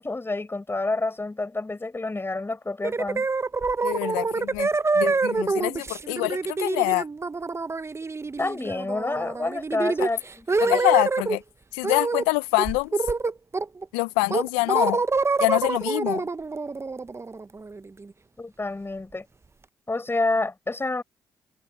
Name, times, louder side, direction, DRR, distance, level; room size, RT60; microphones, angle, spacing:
voice 1, 0.0-3.3 8.4-10.8 18.4-19.3 19.9-21.0, left 2 dB, 25° left, 5.5 m, -28 dB
sound 1, 2.8-11.4 11.8-12.3 12.6-13.8 14.3-18.0, right 4 dB, 30° right, 1.0 m, -26 dB
voice 2, 3.8-4.7 4.9-7.1 10.0-10.1 10.6-11.4 11.7-12.9 13.9-15.0 15.4-16.3, left 24 dB, 85° left, 0.8 m, -25 dB
hypercardioid pair, 45°, 9 cm